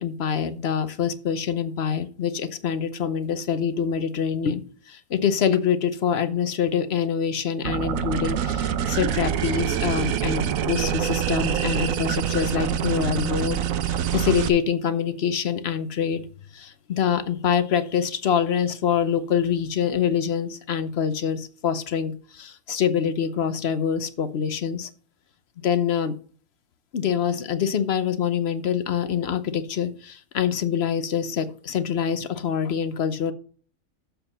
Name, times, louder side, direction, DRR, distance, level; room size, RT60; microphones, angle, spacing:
voice 1, 0.0-16.3 16.5-24.9 25.6-26.1 26.9-33.3, left 8 dB, 55° left, 11 dB, 1.0 m, -25 dB
sound 1, 7.6-14.5, right 9 dB, 80° right, 1.1 m, -25 dB
7.1 x 6.9 x 5.6 m, 0.44 s
omnidirectional pair, 1.4 m